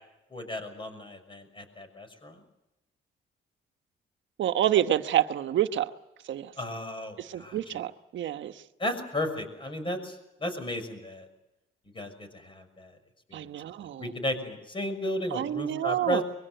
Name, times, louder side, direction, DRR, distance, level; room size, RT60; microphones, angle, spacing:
voice 1, 0.3-2.4 6.6-7.8 8.8-11.3 11.9-12.9 13.3-13.4 14.0-16.2, left 1 dB, 25° left, 8 dB, 6.1 m, -34 dB
voice 2, 4.4-5.9 6.3-6.5 7.2-8.5 13.3-14.1 15.3-16.2, right 11 dB, 70° right, 9 dB, 1.2 m, -28 dB
24.0 x 22.5 x 7.9 m, 0.94 s
cardioid pair, 90°, 20 cm